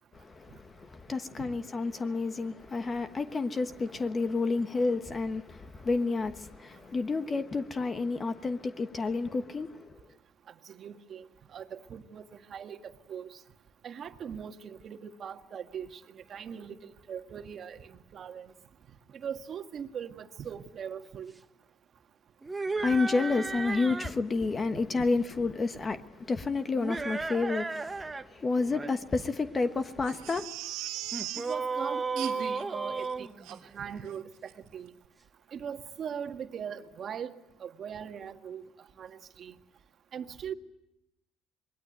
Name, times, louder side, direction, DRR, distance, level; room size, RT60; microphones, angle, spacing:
voice 1, 0.1-9.7 22.8-30.4, left 3 dB, 25° left, 1.2 m, -30 dB
voice 2, 10.8-11.3 11.5-12.2 12.5-12.8 13.1-13.3 13.8-15.9 16.3-18.5 19.2-21.3 31.5-34.2 34.7-34.9 35.5-37.3 37.6-38.6 39.0-39.5 40.1-40.5, right 8 dB, 45° right, 1.7 m, -40 dB
sound 1, 22.4-24.2 26.7-28.2 28.6-28.9 31.1-34.0, right 4 dB, 15° right, 1.2 m, -34 dB
Crying sobbing, 30.0-31.5 32.2-32.6 33.0-33.1 33.4-33.6 34.1-34.2 34.5-34.6, right 15 dB, 80° right, 2.4 m, -39 dB
26.5 x 21.0 x 9.2 m
cardioid pair, 105°, 0 cm